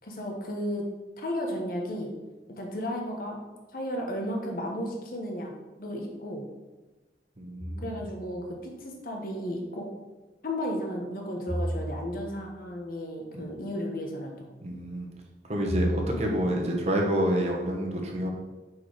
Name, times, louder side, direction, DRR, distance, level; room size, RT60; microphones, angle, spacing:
voice 1, 0.0-0.9 1.2-2.1 2.5-6.4 7.8-9.9 10.4-14.3, equal, 50° left, 0 dB, 1.1 m, -34 dB
voice 2, 7.4-8.0 13.3-13.5 14.6-15.1 15.5-18.3, equal, 35° right, 0 dB, 1.2 m, -28 dB
sound 1, 7.6-8.4 11.5-12.5 15.7-16.6, equal, 5° right, 1.6 m, -33 dB
5.7 x 4.6 x 5.0 m, 1.2 s
head